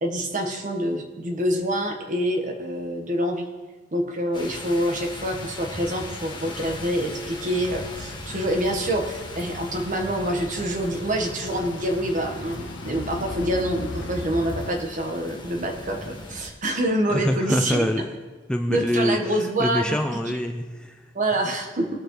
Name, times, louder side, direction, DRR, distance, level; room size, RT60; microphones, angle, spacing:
voice 1, 0.0-3.5 3.9-17.9 18.7-20.0 21.1-21.9, right 1 dB, 45° right, 3 dB, 1.4 m, -26 dB
sound 1, 4.3-16.5, left 2 dB, 25° left, 1.4 m, -39 dB
sound 2, 7.2-14.7, left 3 dB, 70° left, 0.6 m, -38 dB
voice 2, 17.1-18.1 18.5-21.1, equal, 5° left, 4 dB, 0.5 m, -25 dB
19.5 x 6.9 x 3.2 m, 1.3 s
head